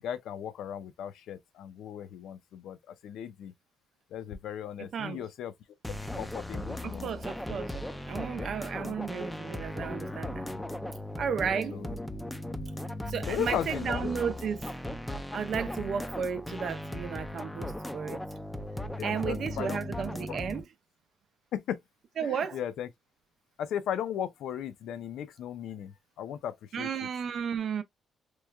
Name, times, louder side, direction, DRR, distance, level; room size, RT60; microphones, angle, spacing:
voice 1, 0.0-3.5 4.1-5.5 6.1-7.1 8.7-9.0 11.5-12.0 13.3-14.1 19.0-19.8 21.5-21.8 22.2-22.9 23.6-27.1, left 10 dB, 80° left, 0.4 m, -37 dB
voice 2, 4.9-5.2 6.8-10.5 11.2-11.8 13.1-14.8 15.3-18.2 19.0-20.6 22.2-22.6 26.7-27.8, right 7 dB, 60° right, 0.4 m, -33 dB
sound 1, 5.8-20.6, left 1 dB, 5° left, 0.4 m, -37 dB
3.0 x 2.2 x 2.2 m
cardioid pair, 90°, 0 cm